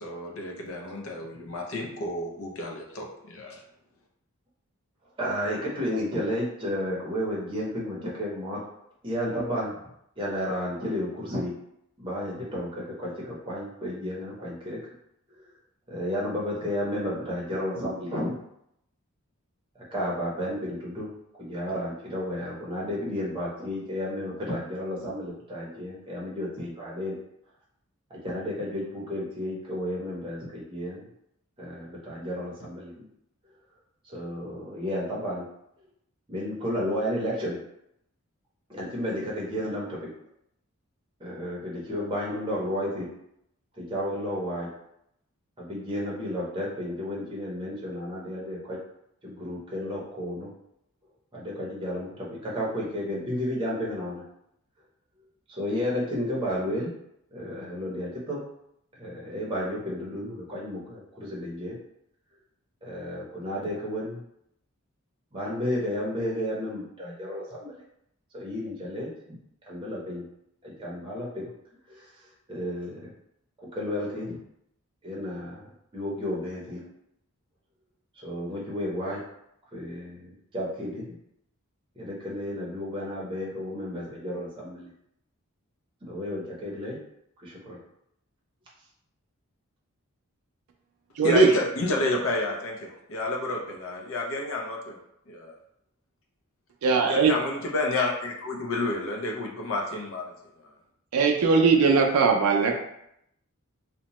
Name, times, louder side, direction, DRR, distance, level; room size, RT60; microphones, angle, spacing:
voice 1, 0.0-3.6 91.2-95.0 95.3-95.5 97.1-100.2, left 2 dB, 70° left, 1 dB, 0.5 m, -30 dB
voice 2, 5.2-8.6 9.0-9.8 10.2-11.5 12.0-14.8 15.3-15.5 15.9-18.4 19.9-21.1 21.4-27.2 28.1-31.1 31.6-33.0 34.0-35.4 36.3-37.6 38.7-40.1 41.2-43.1 43.8-44.7 45.6-48.8 49.2-50.5 51.3-54.2 55.5-56.9 57.3-58.4 59.0-61.8 62.8-64.2 65.3-67.8 68.3-69.4 69.6-70.3 70.6-71.5 71.9-72.1 72.5-73.1 73.6-74.4 75.0-75.7 75.9-76.8 78.1-79.2 79.7-81.1 82.0-84.9 86.1-87.0 87.4-87.8, equal, 20° right, -6 dB, 0.6 m, -32 dB
voice 3, 91.2-91.5 96.8-97.3 101.1-102.7, right 4 dB, 85° right, 2 dB, 0.4 m, -20 dB
2.8 x 2.1 x 2.9 m, 0.77 s
head